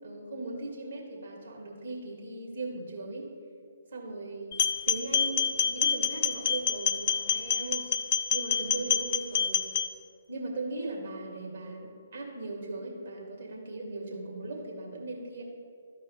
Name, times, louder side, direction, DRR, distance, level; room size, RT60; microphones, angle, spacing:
voice 1, 0.0-3.3 3.9-4.6 4.9-7.9 8.3-9.6 10.3-15.4, right 2 dB, 65° right, -3 dB, 2.3 m, -38 dB
sound 1, 4.5-9.9, left 7 dB, 45° left, 0.4 m, -27 dB
13.0 x 4.7 x 4.5 m, 2.3 s
figure-of-eight pair, 135°, 0 cm